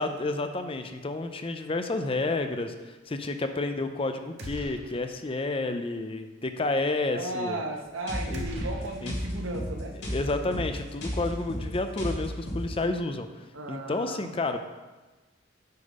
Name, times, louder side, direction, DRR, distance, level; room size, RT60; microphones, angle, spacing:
voice 1, 0.0-7.6 8.3-8.4 9.0-9.1 10.0-13.3 13.7-14.6, left 2 dB, 30° left, 7 dB, 0.6 m, -30 dB
sound 1, 4.4-5.3 5.6-5.7 8.3-9.6, equal, 60° right, 1.4 m, -41 dB
voice 2, 7.0-10.0 13.5-14.5, right 1 dB, 80° right, 2 dB, 1.2 m, -35 dB
sound 2, 8.1-12.8, equal, 60° left, 2.5 m, -34 dB
7.0 x 6.7 x 5.3 m, 1.2 s
head